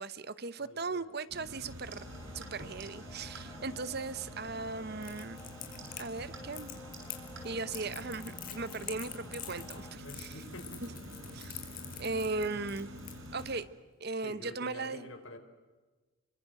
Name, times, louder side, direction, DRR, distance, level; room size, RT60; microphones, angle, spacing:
voice 1, 0.0-2.1 2.3-5.4 6.0-6.7 7.4-10.5 10.8-10.9 11.3-11.7 12.0-12.9 13.3-13.7 14.0-15.1, right 3 dB, 50° right, 15 dB, 1.0 m, -38 dB
voice 2, 0.6-1.1 10.0-11.1 14.2-15.4, left 1 dB, 70° left, 7 dB, 4.3 m, -48 dB
sound 1, 1.3-13.6, equal, 70° right, 6.8 m, -47 dB
sound 2, 1.9-10.0, left 2 dB, 15° left, 1.4 m, -53 dB
Crackle, 5.0-13.5, left 11 dB, 40° left, 4.3 m, -46 dB
29.5 x 24.0 x 7.8 m, 1.3 s
head